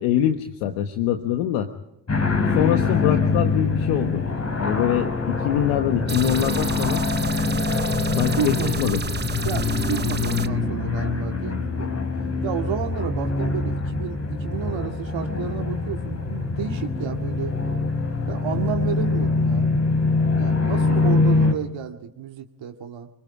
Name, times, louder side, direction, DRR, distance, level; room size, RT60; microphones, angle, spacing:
voice 1, 0.0-1.7 2.5-4.2 4.6-7.0 8.1-9.0, left 11 dB, 85° left, 7 dB, 1.4 m, -24 dB
sound 1, 2.1-21.5, left 3 dB, 30° left, 3.8 m, -24 dB
sound 2, 6.1-10.5, right 6 dB, 20° right, 0.7 m, -32 dB
voice 2, 8.3-8.7 9.4-11.9 12.4-17.5 18.3-19.7 20.3-23.1, right 9 dB, 60° right, 4 dB, 2.1 m, -31 dB
29.0 x 20.5 x 4.9 m, 0.84 s
supercardioid pair, 60°, 50 cm